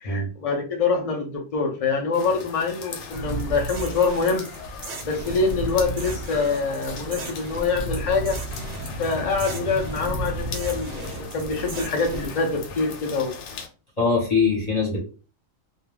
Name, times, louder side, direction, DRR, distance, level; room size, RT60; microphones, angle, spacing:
voice 1, 0.0-4.5 5.1-8.4 9.0-13.4, left 4 dB, 65° left, 1 dB, 0.3 m, -25 dB
sound 1, 2.1-13.7, left 5 dB, 90° left, 1.0 m, -39 dB
sound 2, 3.1-12.3, right 3 dB, 85° right, 0.3 m, -34 dB
sound 3, 5.0-12.8, equal, 65° right, 0.8 m, -39 dB
voice 2, 14.0-15.0, left 4 dB, 35° left, -4 dB, 0.8 m, -22 dB
2.3 x 2.2 x 3.2 m, 0.35 s
omnidirectional pair, 1.3 m